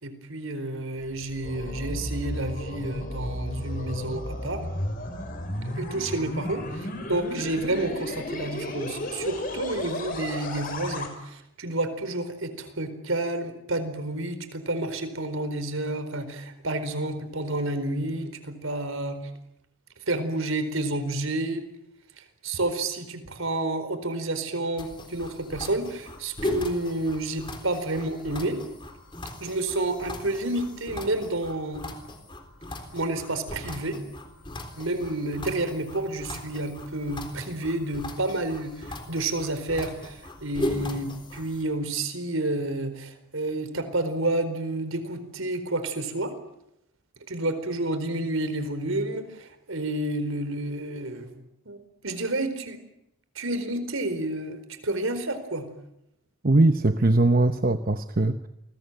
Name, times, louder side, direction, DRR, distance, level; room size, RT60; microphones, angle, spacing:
voice 1, 0.0-4.6 5.6-19.2 20.1-21.6 22.2-28.6 29.4-31.8 32.9-34.0 34.8-46.3 47.3-52.8 53.3-55.6, right 2 dB, 70° right, 10 dB, 4.4 m, -30 dB
sound 1, 1.0-11.1, left 1 dB, 40° left, 5.8 m, -34 dB
sound 2, 24.8-41.6, left 1 dB, 20° left, 3.9 m, -38 dB
voice 2, 56.4-58.5, right 2 dB, 40° right, 9 dB, 1.0 m, -21 dB
28.5 x 21.5 x 9.2 m, 0.83 s
head